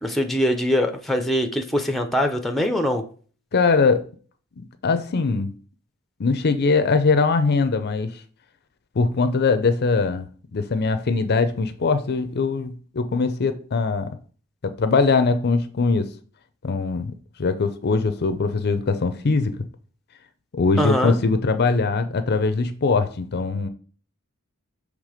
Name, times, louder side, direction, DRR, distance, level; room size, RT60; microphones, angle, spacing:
voice 1, 0.0-3.0 20.8-21.2, equal, ahead, 0.6 m, -22 dB
voice 2, 3.5-4.0 4.8-5.5 6.2-8.2 9.0-10.3 10.5-14.1 14.6-16.1 16.6-17.1 17.4-19.6 20.5-23.7, left 4 dB, 45° left, 0.5 m, -21 dB
6.6 x 3.4 x 5.0 m
head